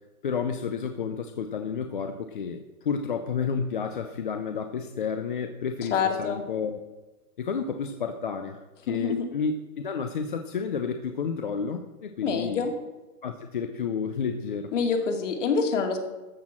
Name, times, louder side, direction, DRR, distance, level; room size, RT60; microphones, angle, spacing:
voice 1, 0.2-6.8 7.4-12.7 13.2-14.7, left 6 dB, 35° left, 7 dB, 0.5 m, -31 dB
voice 2, 5.9-6.4 8.9-9.2 12.2-12.7 14.7-16.0, left 5 dB, 50° left, 3 dB, 2.4 m, -26 dB
13.5 x 6.2 x 7.4 m, 1.1 s
hypercardioid pair, 170°, 46 cm